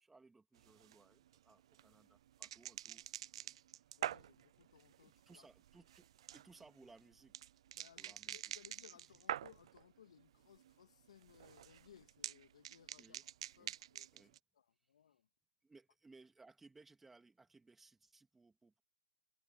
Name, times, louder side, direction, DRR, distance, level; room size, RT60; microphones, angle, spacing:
voice 1, 0.0-3.1 3.3-3.6 5.0-7.4 8.0-8.4 13.0-13.2 13.6-13.7 14.1-14.4 14.8-14.9 15.6-18.8, right 3 dB, 5° right, 2.3 m, -64 dB
sound 1, 0.6-9.8 10.2-10.7 11.0-14.4, right 11 dB, 60° right, 0.5 m, -47 dB
voice 2, 4.0-5.5 7.7-13.3 13.6-14.3 14.5-15.3, left 9 dB, 75° left, 2.3 m, -64 dB
hypercardioid pair, 150°, 3 cm